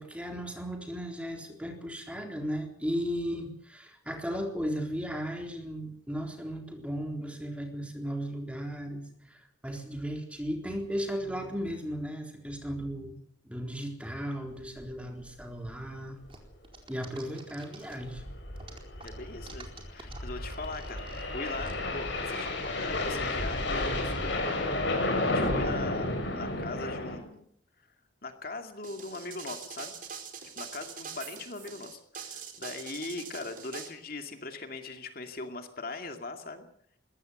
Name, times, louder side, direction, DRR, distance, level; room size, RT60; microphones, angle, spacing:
voice 1, 0.0-13.2 13.4-16.2 16.9-18.2, equal, 5° right, 3 dB, 3.8 m, -36 dB
sound 1, 14.8-15.0 15.2-15.3 15.7-15.8 16.3-16.5 17.8-27.2, left 2 dB, 70° left, 6.7 m, -32 dB
sound 2, 16.3-18.2 18.6-21.7, right 4 dB, 30° right, 4.3 m, -50 dB
voice 2, 19.0-27.5 28.2-29.9 30.6-36.7, left 3 dB, 50° left, 6 dB, 2.4 m, -40 dB
sound 3, 28.8-33.9, right 7 dB, 45° right, 4.1 m, -43 dB
22.0 x 18.0 x 8.0 m, 0.66 s
head